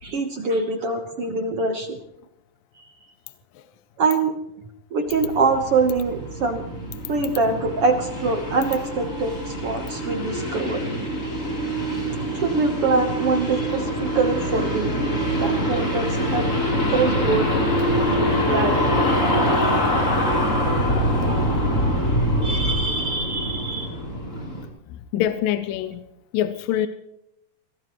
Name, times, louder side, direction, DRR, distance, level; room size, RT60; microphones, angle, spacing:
voice 1, 0.0-2.0 2.8-2.9 4.0-4.3 4.9-6.7 7.1-10.8 12.3-14.9 15.4-16.5 16.8-17.5 18.4-18.8 22.4-23.9, right 4 dB, 65° right, 5 dB, 1.4 m, -24 dB
sound 1, 5.1-24.6, equal, 20° left, 3.7 m, -24 dB
voice 2, 24.9-26.0 26.3-26.9, left 11 dB, 75° left, 11 dB, 2.2 m, -25 dB
23.5 x 18.5 x 3.1 m, 0.82 s
omnidirectional pair, 4.2 m